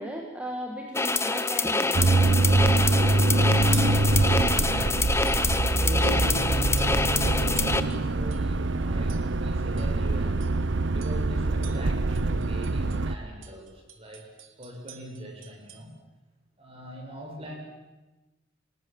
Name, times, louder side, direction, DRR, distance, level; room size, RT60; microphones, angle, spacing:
voice 1, 0.0-2.1, equal, 5° right, 0 dB, 2.1 m, -36 dB
sound 1, 0.9-7.8, left 3 dB, 15° left, 1.0 m, -26 dB
sound 2, 1.9-13.1, right 2 dB, 60° right, 0.8 m, -24 dB
sound 3, 3.7-4.1 4.5-4.7 5.3-5.7 6.0-6.4 6.8-7.1 7.6-8.6 9.1-9.4 9.8-10.0 10.4-10.6 11.0-11.3 11.6-13.1 13.4-15.9, right 10 dB, 75° right, 2.3 m, -48 dB
voice 2, 4.1-5.3 5.7-10.4 10.9-14.3 14.6-15.9 16.6-17.5, equal, 30° right, 2 dB, 6.0 m, -40 dB
29.0 x 19.0 x 7.5 m, 1.1 s
head